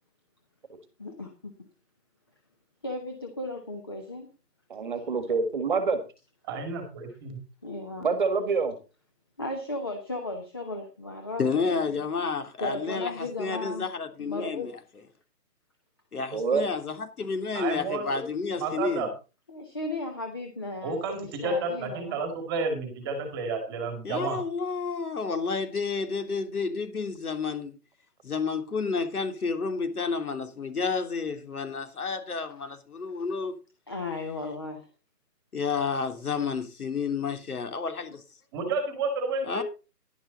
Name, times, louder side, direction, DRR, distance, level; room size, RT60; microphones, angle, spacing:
voice 1, 1.0-1.5 2.8-4.3 7.6-8.1 9.4-11.8 12.6-13.9 14.2-14.8 19.5-22.2 33.9-34.9, left 2 dB, 15° left, 0.9 m, -35 dB
voice 2, 4.7-6.0 8.0-8.8 16.3-16.6, right 4 dB, 30° right, 1.6 m, -26 dB
voice 3, 6.5-7.4 17.5-18.1 18.6-19.1 20.8-24.4 38.5-39.6, right 3 dB, 15° right, 2.0 m, -31 dB
voice 4, 11.4-14.7 16.1-19.1 24.0-27.7 28.2-33.6 35.5-38.2 39.5-39.6, left 5 dB, 65° left, 3.2 m, -30 dB
11.5 x 11.5 x 3.9 m
hypercardioid pair, 165°, 48 cm